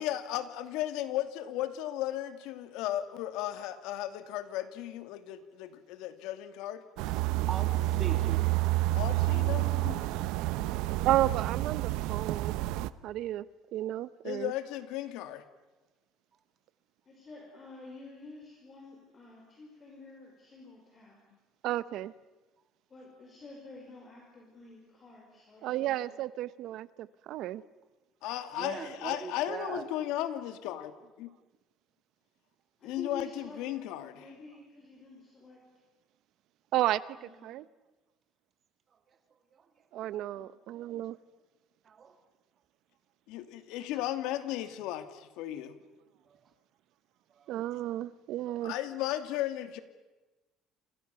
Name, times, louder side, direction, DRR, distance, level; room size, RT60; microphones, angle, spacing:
voice 1, 0.0-6.8 8.9-9.9 14.2-15.4 28.2-31.3 32.8-34.2 43.3-45.8 48.6-49.8, left 13 dB, 85° left, 10 dB, 2.4 m, -35 dB
sound 1, 7.0-12.9, right 18 dB, 85° right, 0.9 m, -29 dB
voice 2, 7.1-8.4 28.5-29.9 41.8-42.1 46.3-46.4 47.4-47.5, right 6 dB, 30° right, 8 dB, 2.9 m, -41 dB
voice 3, 9.1-11.2 11.8-12.0 17.1-21.2 22.9-26.1 32.8-33.6 34.1-35.6 37.2-37.5 40.3-40.5, left 3 dB, 25° left, -1 dB, 5.3 m, -49 dB
voice 4, 11.0-12.5 13.0-13.4 13.7-14.5 21.6-22.1 25.6-27.6 36.7-37.6 39.9-41.2 47.5-48.7, right 14 dB, 60° right, 17 dB, 0.8 m, -32 dB
29.0 x 27.0 x 6.9 m, 1.1 s
cardioid pair, 170°, 0 cm